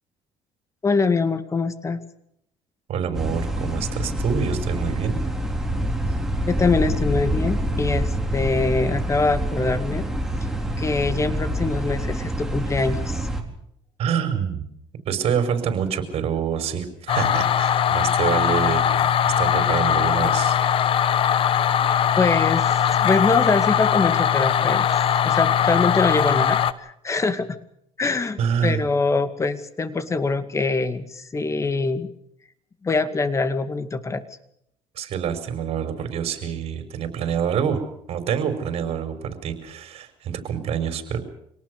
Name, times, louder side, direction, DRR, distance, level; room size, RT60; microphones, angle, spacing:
voice 1, 0.8-2.0 6.5-10.1 10.8-13.3 22.2-24.9 25.2-27.6 28.0-32.1 32.8-34.2, left 3 dB, 25° left, 11 dB, 2.2 m, -24 dB
voice 2, 2.9-5.2 14.0-14.7 15.1-20.6 28.4-28.8 35.0-37.8 38.1-41.2, right 7 dB, 55° right, 7 dB, 5.5 m, -26 dB
sound 1, 3.1-13.4, equal, 5° right, 4.2 m, -26 dB
sound 2, 17.1-26.7, left 9 dB, 50° left, 1.2 m, -20 dB
25.5 x 19.0 x 6.7 m, 0.74 s
cardioid pair, 100°, 12 cm